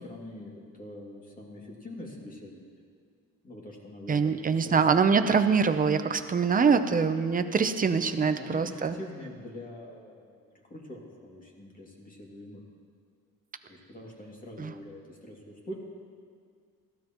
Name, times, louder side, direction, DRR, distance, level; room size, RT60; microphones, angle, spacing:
voice 1, 0.0-2.6 3.4-4.8 8.3-12.6 13.7-15.7, left 1 dB, 25° left, -3 dB, 2.4 m, -44 dB
voice 2, 4.1-9.0 14.6-14.7, right 5 dB, 25° right, 9 dB, 0.7 m, -24 dB
21.5 x 16.0 x 3.0 m, 2.1 s
cardioid pair, 145°, 34 cm